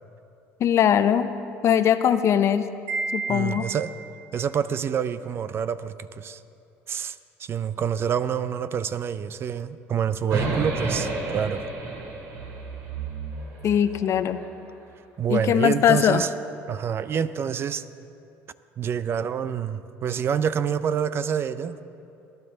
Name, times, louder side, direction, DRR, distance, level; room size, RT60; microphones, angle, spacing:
voice 1, 0.6-1.3 1.6-2.7 3.1-3.6 13.6-14.4 15.3-16.3, left 9 dB, 50° left, 11 dB, 0.6 m, -20 dB
Wind chime, 2.9-4.3, right 3 dB, 85° right, 3.9 m, -32 dB
voice 2, 3.3-3.9 4.3-6.4 6.9-11.6 15.2-16.3 16.7-17.9 18.8-21.8, right 8 dB, 40° right, 14 dB, 0.5 m, -27 dB
sound 1, 10.3-14.5, right 3 dB, 60° right, 2.9 m, -31 dB
20.0 x 10.5 x 3.9 m, 2.6 s
supercardioid pair, 90°, 6 cm